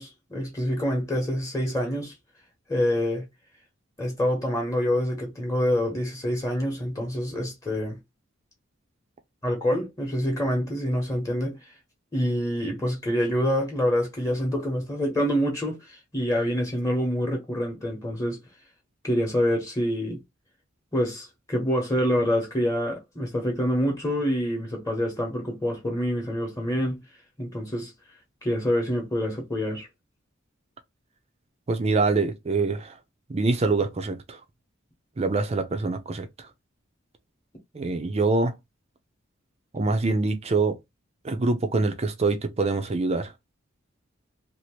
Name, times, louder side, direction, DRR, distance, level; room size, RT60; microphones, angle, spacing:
voice 1, 0.0-2.1 2.7-3.3 4.0-8.0 9.4-11.6 12.1-18.4 19.0-20.2 20.9-27.0 27.4-27.9 28.4-29.9, equal, 15° left, 1.0 m, -26 dB
voice 2, 31.7-32.9 33.3-34.4 35.2-36.3 37.7-38.5 39.7-40.8 41.2-43.3, right 3 dB, 30° right, 0.5 m, -25 dB
2.8 x 2.5 x 2.9 m
head